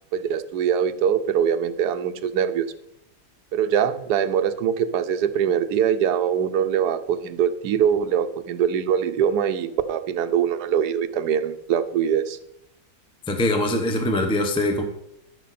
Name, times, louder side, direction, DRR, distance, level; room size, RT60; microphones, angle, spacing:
voice 1, 0.1-2.7 3.5-12.4, right 8 dB, 80° right, 10 dB, 1.2 m, -23 dB
voice 2, 13.3-14.8, left 1 dB, 5° left, 4 dB, 0.7 m, -22 dB
12.5 x 6.2 x 4.2 m, 0.83 s
omnidirectional pair, 1.7 m